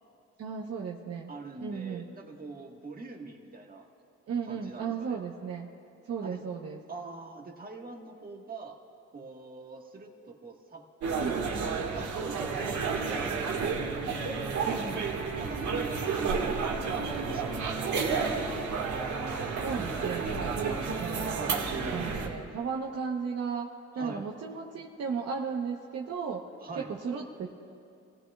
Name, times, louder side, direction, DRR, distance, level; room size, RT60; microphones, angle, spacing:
voice 1, 0.4-1.3 1.6-2.1 4.3-5.7 6.0-6.8 11.2-11.7 14.6-15.1 19.6-21.6 21.9-27.5, right 6 dB, 55° right, -1 dB, 1.0 m, -35 dB
voice 2, 1.3-3.9 4.5-5.2 6.2-6.4 6.9-8.8 9.1-10.9 11.2-13.5 15.4-18.8 21.3-21.6 24.0-24.2 26.6-26.9, right 3 dB, 30° right, 1 dB, 1.6 m, -44 dB
sound 1, 11.0-22.3, right 5 dB, 70° right, 1.8 m, -31 dB
27.0 x 16.0 x 2.4 m, 2.5 s
cardioid pair, 90°, 30 cm